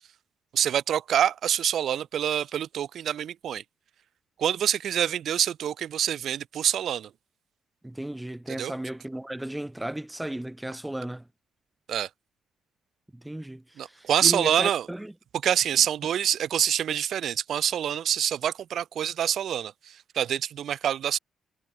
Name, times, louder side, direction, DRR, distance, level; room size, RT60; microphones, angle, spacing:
voice 1, 0.5-3.6 4.4-7.1 8.5-8.7 11.9-12.1 13.8-14.9 15.4-21.2, right 10 dB, 65° right, 1.3 m, -26 dB
voice 2, 7.8-11.3 13.1-15.1, right 1 dB, 10° right, 1.4 m, -35 dB
cardioid pair, 90°, 0 cm